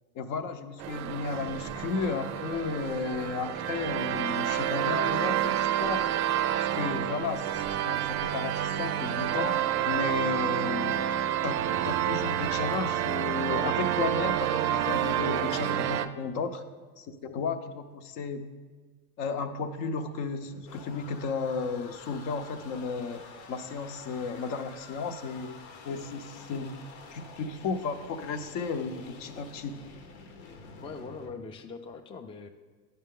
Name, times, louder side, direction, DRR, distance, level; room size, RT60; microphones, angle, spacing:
voice 1, 0.1-6.1 6.6-11.0 11.4-16.6 17.0-18.4 19.2-23.2 23.5-25.5 25.8-29.8, left 4 dB, 60° left, 8 dB, 0.7 m, -34 dB
sound 1, 0.8-16.1, right 11 dB, 55° right, 0.5 m, -29 dB
voice 2, 15.3-15.9 30.8-32.5, left 4 dB, 15° left, 5 dB, 0.4 m, -42 dB
sound 2, 20.1-31.3, left 4 dB, 85° left, 1.0 m, -49 dB
10.0 x 5.7 x 3.7 m, 1.4 s
supercardioid pair, 105°, 32 cm